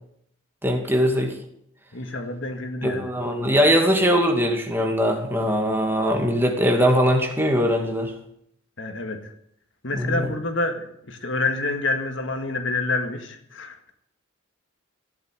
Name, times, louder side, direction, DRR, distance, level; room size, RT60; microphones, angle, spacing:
voice 1, 0.6-1.3 2.8-8.1 9.9-10.3, equal, 10° right, 2 dB, 2.3 m, -21 dB
voice 2, 1.9-3.1 8.8-9.3 9.8-13.9, left 2 dB, 60° left, 6 dB, 1.9 m, -28 dB
15.5 x 8.8 x 9.2 m, 0.72 s
head